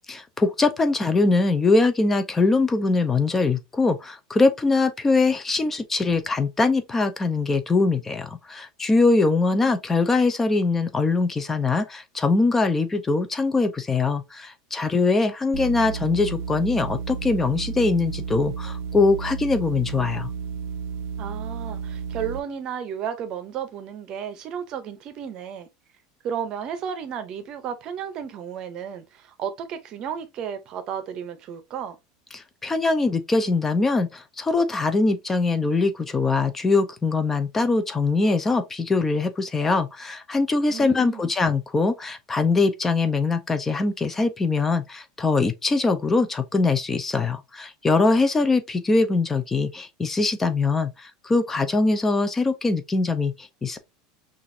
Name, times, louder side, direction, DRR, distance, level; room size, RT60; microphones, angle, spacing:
voice 1, 0.1-20.3 32.3-53.8, left 3 dB, 10° left, 0.5 m, -22 dB
sound 1, 15.5-22.4, right 6 dB, 70° right, 0.5 m, -32 dB
voice 2, 21.2-25.7 26.2-32.0 40.7-41.3, right 8 dB, 35° right, 0.7 m, -33 dB
6.0 x 2.5 x 2.7 m
supercardioid pair, 165°, 2 cm